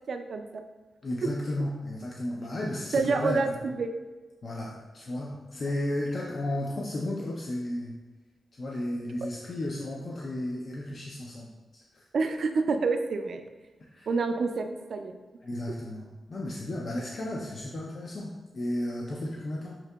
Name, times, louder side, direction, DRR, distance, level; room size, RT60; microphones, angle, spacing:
voice 1, 0.1-0.6 2.9-3.9 12.1-13.4 14.1-15.1, right 4 dB, 65° right, 7 dB, 0.3 m, -28 dB
voice 2, 1.0-3.7 4.4-8.0 8.6-12.0 13.9-14.1 15.4-19.8, left 1 dB, 55° left, -2 dB, 0.4 m, -34 dB
5.8 x 2.7 x 2.2 m, 1.2 s
cardioid pair, 75°, 0 cm